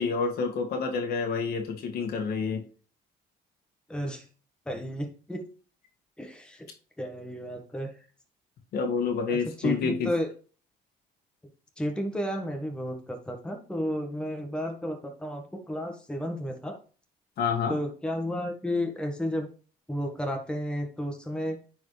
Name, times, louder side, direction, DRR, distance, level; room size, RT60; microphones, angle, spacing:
voice 1, 0.0-2.6 8.7-10.1 17.4-17.8, left 5 dB, 65° left, 4 dB, 1.9 m, -28 dB
voice 2, 3.9-4.2 4.7-5.4 6.2-6.7 7.0-7.9 9.3-10.3 11.8-16.8 17.7-19.5 19.9-21.6, equal, 5° left, 3 dB, 1.4 m, -32 dB
9.4 x 4.7 x 3.2 m, 0.39 s
cardioid pair, 110°, 17 cm